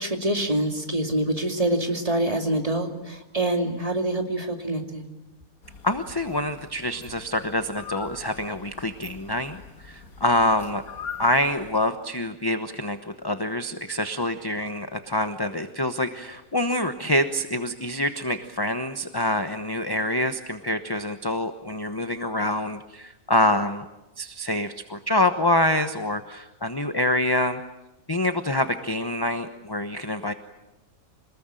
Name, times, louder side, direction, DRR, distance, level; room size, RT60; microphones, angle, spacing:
voice 1, 0.0-5.0, right 1 dB, 25° right, 3 dB, 2.7 m, -25 dB
sound 1, 5.6-11.7, left 6 dB, 85° left, 2.3 m, -43 dB
voice 2, 5.8-10.8 11.2-23.9 24.2-27.6 28.1-30.3, left 1 dB, 20° left, 8 dB, 0.9 m, -26 dB
26.5 x 20.0 x 9.1 m, 0.93 s
omnidirectional pair, 1.5 m